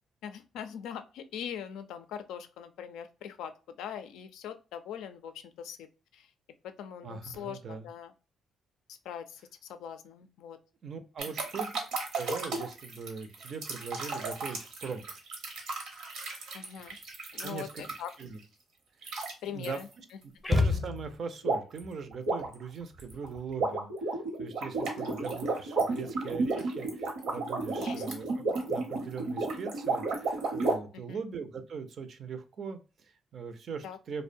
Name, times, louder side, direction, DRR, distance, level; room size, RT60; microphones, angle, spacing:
voice 1, 0.2-5.9 6.1-6.3 6.6-8.1 9.0-10.6 11.3-11.4 16.5-17.0 17.3-18.1 19.4-19.9 25.9-26.1 27.8-28.0 30.9-31.2 33.8-34.0, left 8 dB, 85° left, 9 dB, 0.3 m, -42 dB
voice 2, 7.0-7.9 10.8-11.7 12.1-15.2 17.4-17.8 18.2-18.4 19.4-19.8 20.2-28.4 28.7-34.2, right 5 dB, 55° right, 8 dB, 0.4 m, -41 dB
sound 1, 11.2-18.2 19.0-19.3 19.6-19.8 21.4-21.8 22.1-30.7, right 3 dB, 90° right, 0.9 m, -33 dB
sound 2, 20.4-21.5, left 3 dB, 20° left, 0.6 m, -28 dB
2.5 x 2.1 x 2.5 m, 0.33 s
cardioid pair, 90°, 0 cm